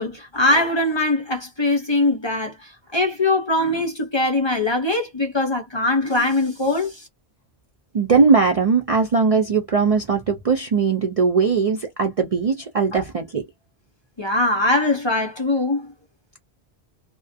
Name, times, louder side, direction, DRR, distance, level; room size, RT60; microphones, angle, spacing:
voice 1, 0.0-7.1 12.9-13.0 14.2-15.9, left 2 dB, 30° left, 0.6 m, -21 dB
voice 2, 7.9-13.4, right 5 dB, 50° right, 0.4 m, -19 dB
2.4 x 2.1 x 2.5 m
omnidirectional pair, 1.1 m